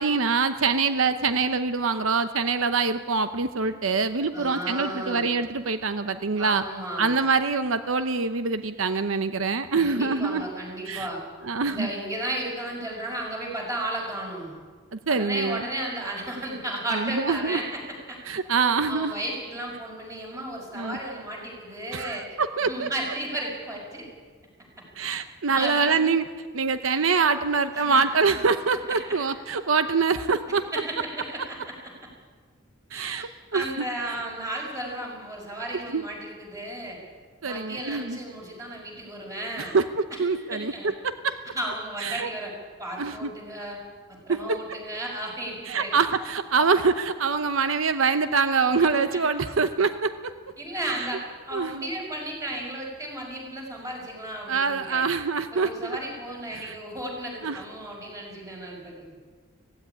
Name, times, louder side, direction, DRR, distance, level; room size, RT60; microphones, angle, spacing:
voice 1, 0.0-6.6 7.0-10.5 10.9-11.1 11.4-11.9 15.1-15.6 16.9-17.6 18.3-19.1 20.7-21.0 21.9-22.9 25.0-26.2 26.5-30.6 32.9-33.6 35.9-36.0 37.4-38.2 39.6-40.7 41.0-41.4 42.0-42.3 43.0-43.3 44.3-44.4 45.7-50.1 51.5-51.8 54.5-56.0 56.5-56.8 57.4-57.6, right 4 dB, 85° right, 10 dB, 0.9 m, -25 dB
voice 2, 4.3-5.2 6.4-7.1 9.7-11.2 11.6-14.5 15.1-17.8 18.1-18.2 18.9-22.2 22.6-24.1 25.5-26.0 27.7-28.4 28.9-29.0 30.7-31.7 32.9-37.0 37.4-39.7 40.4-40.9 41.6-42.5 42.8-43.8 44.1-46.0 50.6-55.0 55.5-59.2, right 1 dB, 15° right, -1 dB, 5.9 m, -34 dB
16.5 x 16.5 x 9.8 m, 1.5 s
head